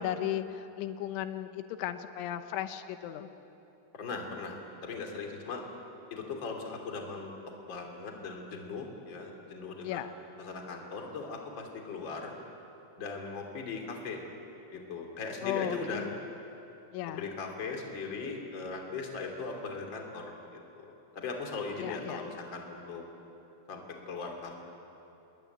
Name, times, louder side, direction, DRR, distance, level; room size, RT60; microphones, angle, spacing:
voice 1, 0.0-3.3 9.8-10.1 15.4-16.2 16.9-17.3 21.8-22.3, left 11 dB, 90° left, 9 dB, 3.4 m, -36 dB
voice 2, 3.9-4.5 4.8-5.6 6.1-7.3 7.7-10.1 10.4-12.3 13.0-14.2 14.7-16.0 17.2-20.2 20.5-23.0 23.7-24.5, left 4 dB, 30° left, 2 dB, 2.8 m, -39 dB
26.0 x 21.0 x 9.3 m, 3.0 s
omnidirectional pair, 5.4 m